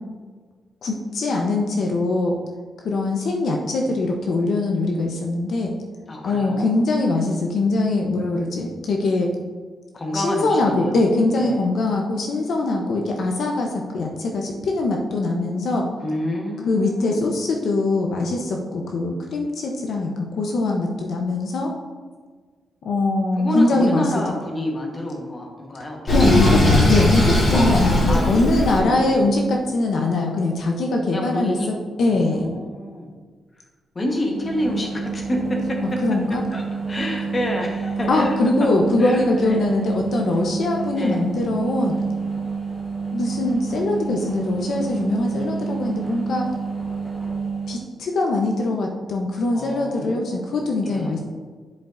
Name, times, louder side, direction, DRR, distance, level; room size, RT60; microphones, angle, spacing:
voice 1, 0.8-2.4 2.8-5.7 6.2-9.3 10.1-15.9 16.7-21.7 22.8-24.1 26.1-26.6 26.9-31.6 32.0-32.5 36.0-36.4 38.1-42.0 43.1-46.5 47.7-51.2, left 2 dB, 55° left, 1 dB, 0.7 m, -22 dB
voice 2, 6.1-6.7 9.9-11.0 11.4-11.6 16.0-17.3 23.4-26.6 28.1-29.4 31.1-33.1 33.9-36.0 36.5-38.3 38.6-38.7 39.0-39.6 40.9-41.2 49.5-50.6 50.8-51.2, left 1 dB, 25° left, 0 dB, 1.1 m, -28 dB
Sink (filling or washing), 26.1-28.8, left 1 dB, 40° left, 2.0 m, -18 dB
sound 1, 34.3-47.8, right 5 dB, 15° right, 0.8 m, -28 dB
10.5 x 5.0 x 2.5 m, 1.5 s
wide cardioid pair, 175°, 0 cm